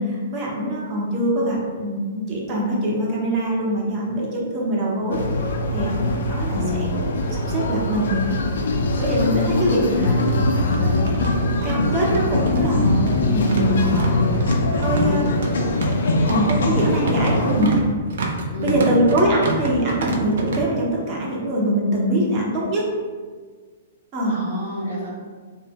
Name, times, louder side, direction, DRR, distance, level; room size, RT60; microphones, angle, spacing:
voice 1, 0.0-5.2 5.7-7.0 7.3-8.1 9.0-10.2 11.6-14.2 14.7-15.4 16.2-17.7 18.6-22.9 24.1-24.4, right 1 dB, 35° right, -4 dB, 0.8 m, -23 dB
sound 1, 5.1-17.6, left 2 dB, 65° left, 0.3 m, -22 dB
voice 2, 6.5-7.0 9.9-11.0 16.8-17.8 18.5-18.9 24.2-25.1, equal, 75° right, -6 dB, 1.1 m, -29 dB
sound 2, 8.6-8.7 8.9-9.0 9.9-20.6, right 3 dB, 60° right, 0.4 m, -29 dB
2.0 x 2.0 x 3.5 m, 1.5 s
figure-of-eight pair, 110°, 0 cm